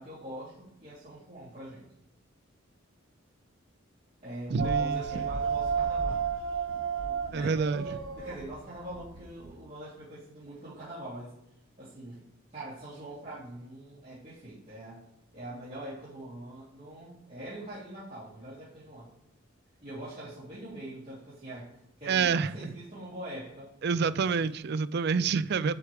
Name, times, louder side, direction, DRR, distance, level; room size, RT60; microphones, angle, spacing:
voice 1, 0.0-1.8 4.2-6.3 7.0-11.3 11.8-12.2 12.5-15.0 15.3-19.1 19.8-23.7 24.4-24.5, right 1 dB, 30° right, 3.2 m, -43 dB
voice 2, 4.5-5.3 7.3-7.8 22.1-22.7 23.8-25.8, right 5 dB, 55° right, 0.4 m, -28 dB
sound 1, 4.6-9.5, right 6 dB, 80° right, 0.9 m, -32 dB
8.1 x 8.1 x 3.4 m
head